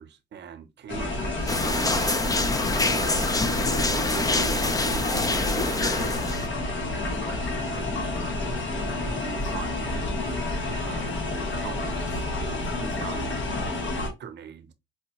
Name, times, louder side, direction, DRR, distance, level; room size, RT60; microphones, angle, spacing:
voice 1, 0.0-2.3 2.9-3.3 4.0-5.2 5.7-6.6 7.2-8.7 8.9-9.9 10.8-11.2 11.5-12.3 12.8-13.3 13.6-14.7, right 8 dB, 60° right, 0.7 m, -41 dB
sound 1, 0.9-14.1, left 2 dB, 70° left, 1.4 m, -29 dB
sound 2, 1.5-6.5, left 2 dB, 20° left, 0.5 m, -26 dB
4.8 x 2.2 x 2.8 m
cardioid pair, 90°, 20 cm